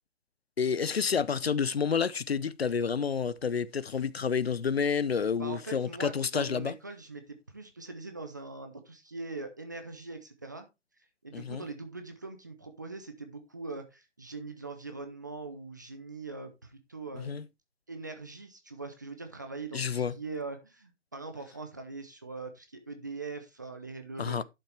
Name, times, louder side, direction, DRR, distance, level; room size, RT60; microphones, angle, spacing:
voice 1, 0.6-6.7 11.3-11.6 17.1-17.4 19.7-20.1 24.2-24.4, left 6 dB, 60° left, 0.7 m, -29 dB
voice 2, 5.4-10.7 11.2-17.4 17.9-24.4, right 3 dB, 15° right, 0.7 m, -42 dB
11.5 x 6.7 x 3.3 m
figure-of-eight pair, 160°, 35 cm